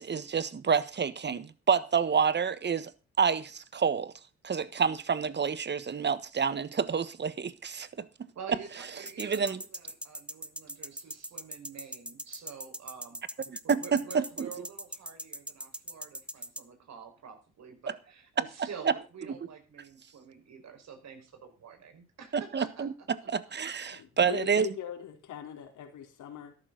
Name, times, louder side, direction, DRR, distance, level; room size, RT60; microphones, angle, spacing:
voice 1, 0.0-2.9 3.2-4.1 4.4-7.9 9.2-9.6 13.5-14.5 18.6-18.9 19.3-19.4 22.3-22.9 23.3-24.7, right 6 dB, 35° right, 1.4 m, -28 dB
voice 2, 8.3-8.7 8.9-13.2 13.8-22.9 23.2-23.3, right 6 dB, 65° right, 5.2 m, -47 dB
sound 1, 9.1-16.6, right 1 dB, 5° right, 0.9 m, -40 dB
voice 3, 23.9-26.6, left 9 dB, 75° left, 3.9 m, -41 dB
13.5 x 12.0 x 4.0 m
cardioid pair, 90°, 30 cm